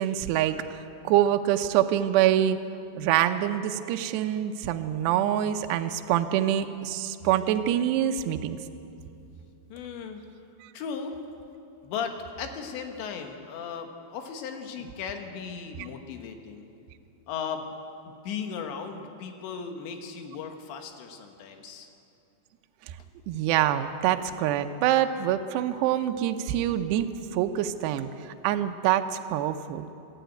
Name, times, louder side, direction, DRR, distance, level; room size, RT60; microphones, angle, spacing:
voice 1, 0.0-2.6 3.0-8.6 10.6-10.7 23.3-29.9, right 11 dB, 80° right, 7 dB, 2.8 m, -25 dB
voice 2, 9.7-10.2 10.7-11.2 11.8-16.6 17.3-17.7 18.3-21.9, left 6 dB, 85° left, 5 dB, 3.7 m, -36 dB
25.5 x 11.5 x 9.1 m, 2.7 s
omnidirectional pair, 5.1 m